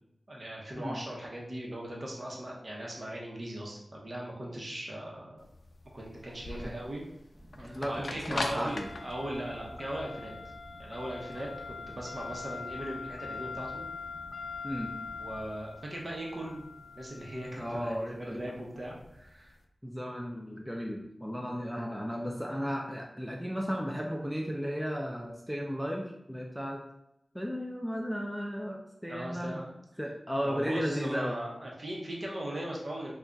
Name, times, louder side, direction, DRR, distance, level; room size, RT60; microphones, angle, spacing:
voice 1, 0.3-5.4 5.9-7.0 7.6-10.3 10.8-13.8 15.2-19.5 29.1-29.7 30.4-33.1, right 1 dB, 50° right, -3 dB, 1.0 m, -39 dB
sound 1, 5.4-19.5, left 3 dB, 80° left, 0.4 m, -42 dB
sound 2, 7.3-15.6, equal, 35° right, 1.1 m, -53 dB
voice 2, 7.5-8.9 14.6-14.9 17.6-18.4 19.8-26.8 27.3-29.6 30.0-31.4, equal, ahead, 0 dB, 0.4 m, -35 dB
3.5 x 2.4 x 3.9 m, 0.82 s
wide cardioid pair, 80°, 0 cm